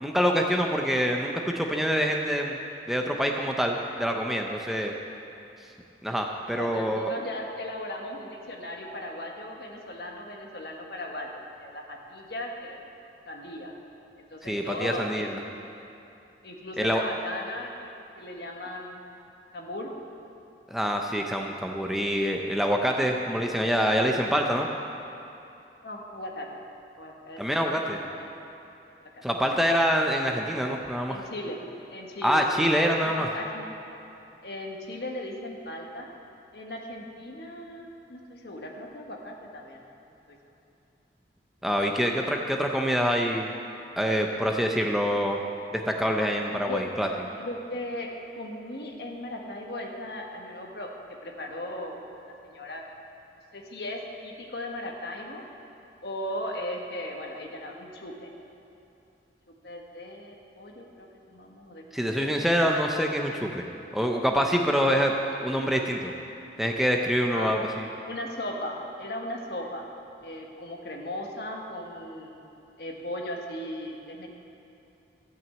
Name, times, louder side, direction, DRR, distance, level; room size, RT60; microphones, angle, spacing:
voice 1, 0.0-2.6 2.9-4.9 6.0-7.1 14.4-15.4 16.8-17.0 20.7-24.7 27.4-28.0 29.2-31.2 32.2-33.3 41.6-43.5 44.0-45.4 45.7-47.1 61.9-63.7 63.9-65.1 65.4-66.1 66.6-67.8, equal, ahead, 1 dB, 0.6 m, -25 dB
voice 2, 6.5-11.3 11.6-12.8 13.2-13.7 14.2-15.4 16.4-17.9 18.2-19.0 19.5-19.9 25.8-26.5 27.0-28.3 29.1-29.2 31.1-31.6 31.9-32.4 33.0-33.7 34.4-36.1 36.5-39.8 40.3-40.4 46.5-46.8 47.4-48.1 48.3-52.0 52.4-52.8 53.5-55.4 56.0-58.3 59.5-61.8 62.2-62.3 64.8-64.9 67.3-69.9 70.2-72.3 72.8-74.3, left 1 dB, 65° left, 1 dB, 1.5 m, -37 dB
14.0 x 6.1 x 8.5 m, 2.8 s
head